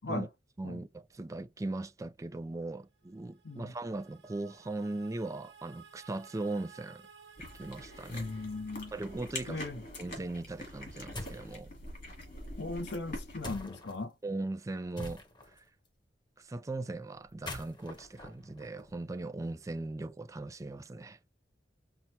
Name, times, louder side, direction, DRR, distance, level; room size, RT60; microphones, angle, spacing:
voice 1, 0.6-7.1 7.6-8.3 8.9-9.6 10.0-11.7 14.2-15.2 15.5-15.6 16.4-21.2, right 2 dB, 20° right, 0.4 m, -39 dB
Redemption Choir, 3.0-10.2, right 6 dB, 85° right, 0.9 m, -57 dB
sound 1, 7.4-13.6, left 1 dB, 55° left, 2.1 m, -45 dB
voice 2, 8.1-8.9 9.5-9.8 12.6-14.1, left 2 dB, 70° left, 0.6 m, -38 dB
sound 2, 11.1-11.5 13.4-14.0 15.0-15.6 17.3-19.2, left 1 dB, 25° left, 1.0 m, -44 dB
5.8 x 2.0 x 2.8 m
head